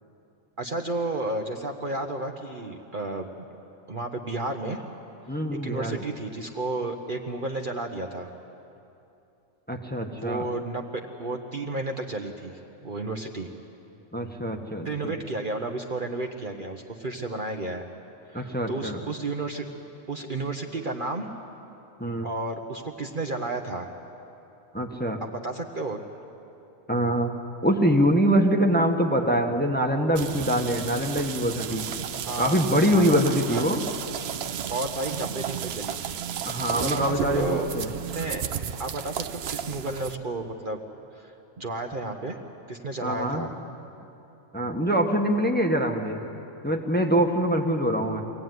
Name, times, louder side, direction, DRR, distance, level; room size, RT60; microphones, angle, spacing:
voice 1, 0.6-3.5 3.9-4.8 5.6-8.3 10.1-13.5 14.8-17.8 18.3-19.7 20.1-21.3 22.2-23.9 25.2-26.0 32.3-32.6 32.9-33.6 34.7-36.2 36.4-37.7 38.1-38.4 38.8-40.8 41.1-42.4 42.7-43.5, right 2 dB, 40° right, 2 dB, 1.1 m, -32 dB
voice 2, 5.3-6.0 9.7-10.4 14.1-15.1 18.3-19.0 22.0-22.3 24.7-25.2 26.9-27.3 27.6-31.8 32.4-33.8 36.4-37.9 43.0-43.5 44.5-46.2 46.6-48.2, equal, 5° left, 1 dB, 1.4 m, -24 dB
sound 1, 30.2-40.2, right 9 dB, 55° right, 0.8 m, -33 dB
24.0 x 17.0 x 9.4 m, 2.8 s
omnidirectional pair, 1.4 m